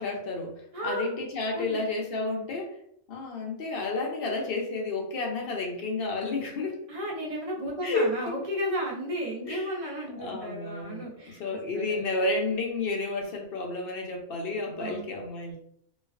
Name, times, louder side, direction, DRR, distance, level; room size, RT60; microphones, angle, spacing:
voice 1, 0.0-2.8 3.1-6.8 7.8-8.3 9.4-9.7 10.2-15.6, left 3 dB, 65° left, 1 dB, 0.7 m, -31 dB
voice 2, 0.7-1.1 1.5-1.8 6.9-12.0 14.8-15.2, equal, 45° right, -3 dB, 0.5 m, -34 dB
2.3 x 2.3 x 2.3 m, 0.69 s
omnidirectional pair, 1.2 m